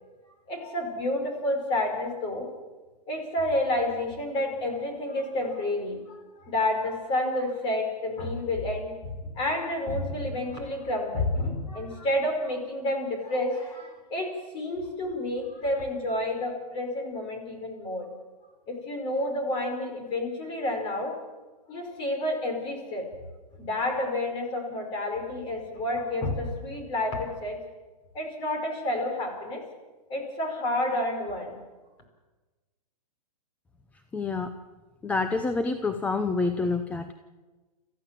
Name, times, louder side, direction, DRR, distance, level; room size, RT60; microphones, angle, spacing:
voice 1, 0.5-2.5 3.1-8.9 9.2-18.1 18.7-21.2 21.7-23.1 23.6-27.6 28.1-29.6 30.1-31.6, left 1 dB, 25° left, 3 dB, 5.0 m, -30 dB
voice 2, 34.1-34.5 35.0-37.1, left 3 dB, 5° left, 8 dB, 0.7 m, -27 dB
26.0 x 15.0 x 7.6 m, 1.3 s
hypercardioid pair, 150°, 20 cm